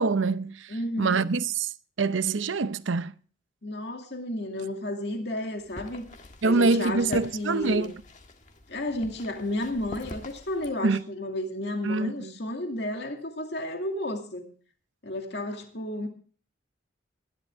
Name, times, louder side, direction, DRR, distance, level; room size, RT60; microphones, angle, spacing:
voice 1, 0.0-1.7 2.0-3.1 6.4-7.9 10.8-11.0 11.8-12.3, right 4 dB, 90° right, 0.7 m, -25 dB
voice 2, 0.7-1.3 3.6-6.1 6.4-7.9 8.7-14.5 15.0-16.1, left 1 dB, 60° left, 2.4 m, -32 dB
sound 1, 5.6-10.7, left 1 dB, 40° left, 1.7 m, -44 dB
20.5 x 11.0 x 3.5 m
head